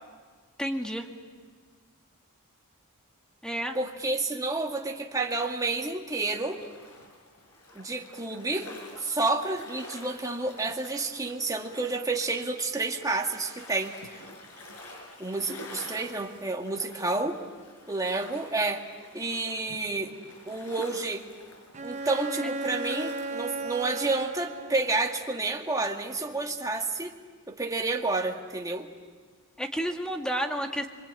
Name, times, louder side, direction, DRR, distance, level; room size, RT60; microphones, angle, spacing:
voice 1, 0.6-1.1 3.4-3.8 29.6-30.9, equal, 5° left, 3 dB, 2.0 m, -30 dB
voice 2, 3.7-6.6 7.7-8.7 9.0-14.2 15.2-17.4 17.9-18.8 19.1-20.1 20.5-21.2 21.8-27.1 27.5-28.9, right 3 dB, 15° right, 1 dB, 2.1 m, -30 dB
sound 1, 6.1-24.2, left 1 dB, 90° left, 5.9 m, -48 dB
Bowed string instrument, 21.7-25.3, right 2 dB, 30° right, 0.8 m, -35 dB
25.5 x 25.0 x 9.2 m, 1.5 s
head